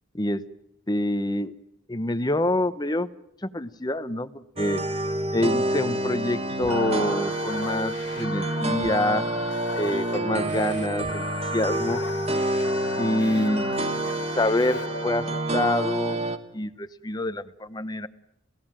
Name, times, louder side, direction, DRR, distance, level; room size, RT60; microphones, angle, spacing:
voice 1, 0.9-1.5 1.9-3.1 3.4-4.8 5.3-9.2 9.8-11.3 11.5-12.0 13.0-13.8 14.3-15.3 15.5-16.2 16.5-18.1, left 1 dB, 20° left, 13 dB, 0.8 m, -26 dB
sound 1, 4.6-16.4, right 2 dB, 30° right, 1.2 m, -28 dB
sound 2, 6.6-15.4, left 4 dB, 60° left, 2.0 m, -37 dB
29.5 x 16.0 x 7.5 m, 0.85 s
head